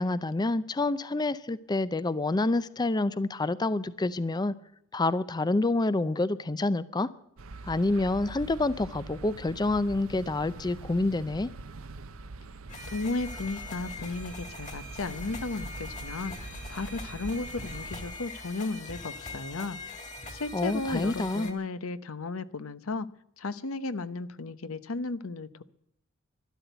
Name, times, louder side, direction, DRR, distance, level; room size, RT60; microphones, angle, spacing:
voice 1, 0.0-4.5 4.9-7.1 7.6-11.5 20.5-21.5, left 2 dB, 20° left, 16 dB, 0.5 m, -28 dB
sound 1, 7.4-18.2, right 3 dB, 85° right, 0.8 m, -43 dB
sound 2, 12.7-21.5, left 2 dB, 35° left, 2.3 m, -42 dB
voice 2, 12.9-16.3 16.7-19.8 20.3-23.1 23.4-25.6, left 3 dB, 80° left, 14 dB, 0.8 m, -34 dB
12.5 x 12.0 x 8.0 m, 0.77 s
head